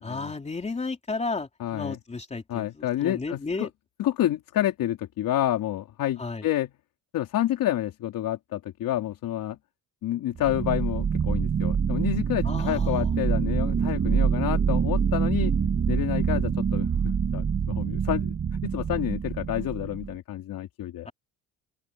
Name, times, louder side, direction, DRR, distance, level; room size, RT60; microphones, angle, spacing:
voice 1, 0.0-3.7 6.2-6.5 12.4-13.1 21.1-21.2, left 3 dB, 15° left, 3.6 m, -33 dB
voice 2, 1.6-2.0 2.5-3.7 4.0-6.7 7.1-9.6 10.0-15.5 15.9-21.1, left 13 dB, 60° left, 3.4 m, -29 dB
sound 1, 10.3-20.2, right 6 dB, 30° right, 2.8 m, -26 dB
open air
cardioid pair, 145°, 38 cm